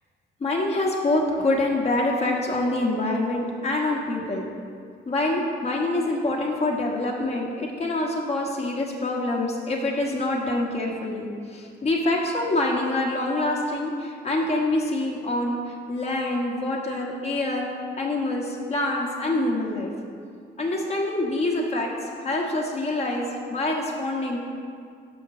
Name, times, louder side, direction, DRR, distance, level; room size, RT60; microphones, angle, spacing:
voice 1, 0.4-4.5 5.0-17.7 18.0-19.9 20.6-24.4, left 2 dB, 30° left, -1 dB, 1.2 m, -26 dB
6.3 x 5.8 x 4.8 m, 2.2 s
cardioid pair, 90°, 20 cm